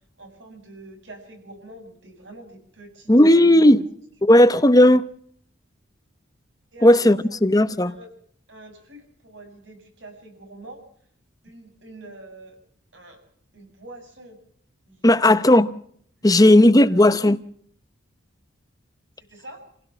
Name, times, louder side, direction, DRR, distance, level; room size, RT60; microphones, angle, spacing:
voice 1, 0.2-4.0 4.3-4.5 6.7-7.4 7.8-8.1 8.5-10.8 11.4-12.6 12.9-13.2 13.5-14.4 14.8-15.5 16.2-17.1 19.3-19.6, right 1 dB, 70° right, 7.9 m, -44 dB
voice 2, 3.1-3.8 4.2-5.1 6.8-8.0 15.0-15.7 16.2-17.4, left 1 dB, 20° left, 0.9 m, -14 dB
29.0 x 16.5 x 5.8 m
head